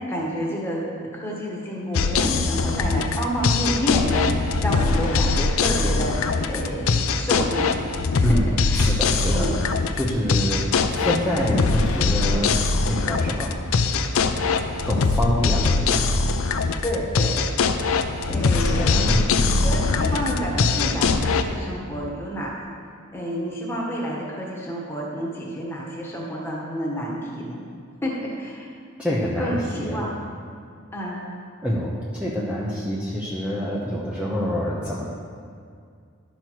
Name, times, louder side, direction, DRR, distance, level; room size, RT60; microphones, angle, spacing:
voice 1, 0.1-7.7 8.1-8.9 9.3-9.6 16.8-17.4 18.3-18.9 19.4-22.5 23.1-27.6 28.0-28.6 29.4-30.1 30.9-31.2, equal, 10° left, -3 dB, 1.5 m, -29 dB
sound 1, 1.9-21.4, left 4 dB, 90° left, 0.5 m, -22 dB
voice 2, 8.7-9.5 9.9-13.5 14.8-16.1 18.3-18.5 18.7-19.6 29.0-30.0 31.6-35.1, equal, 5° right, -6 dB, 0.9 m, -26 dB
12.0 x 6.0 x 4.7 m, 2.2 s
head